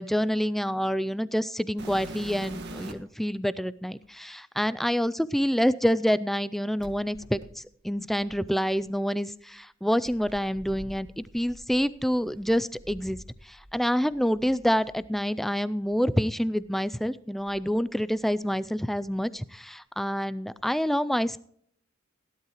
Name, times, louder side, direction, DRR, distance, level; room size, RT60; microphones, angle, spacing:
voice 1, 0.0-13.2 13.4-21.4, equal, ahead, 16 dB, 0.4 m, -27 dB
sound 1, 1.8-3.2 4.0-4.1 6.8-8.9 10.0-13.8 14.0-15.1 15.9-16.0 16.6-16.7 17.4-18.5 18.8-19.3 20.6-20.7, right 1 dB, 55° right, 1.7 m, -45 dB
17.5 x 11.5 x 3.0 m, 0.64 s
head